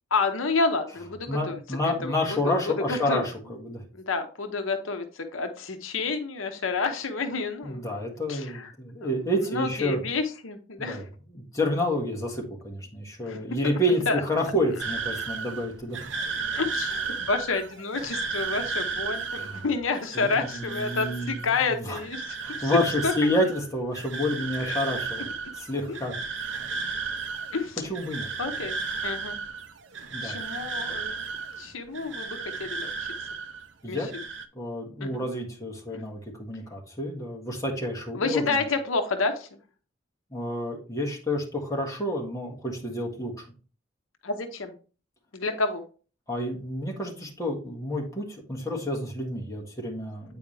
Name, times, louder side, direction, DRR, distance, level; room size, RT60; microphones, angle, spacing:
voice 1, 0.1-1.6 1.8-2.1 2.4-3.2 3.9-7.9 8.3-8.7 9.0-9.1 9.4-11.0 13.2-13.4 14.1-14.2 15.2-15.4 16.5-22.7 23.0-23.3 24.6-24.8 25.9-26.0 27.5-27.8 28.4-28.8 29.0-29.4 30.2-31.3 31.6-32.9 33.9-34.1 35.0-35.2 35.9-36.0 38.1-39.6 44.2-44.7 45.3-45.8, left 4 dB, 80° left, 7 dB, 0.9 m, -29 dB
voice 2, 1.3-3.8 7.6-10.0 10.8-11.0 11.3-16.1 19.3-19.6 20.1-22.0 22.4-25.2 25.5-26.1 27.9-28.3 30.1-30.4 33.8-34.1 34.5-38.6 40.3-43.4 46.3-50.4, left 1 dB, 15° left, -1 dB, 1.6 m, -29 dB
sound 1, 14.8-33.7 33.9-34.5, right 4 dB, 65° right, 0.6 m, -34 dB
8.5 x 4.8 x 3.2 m, 0.37 s
head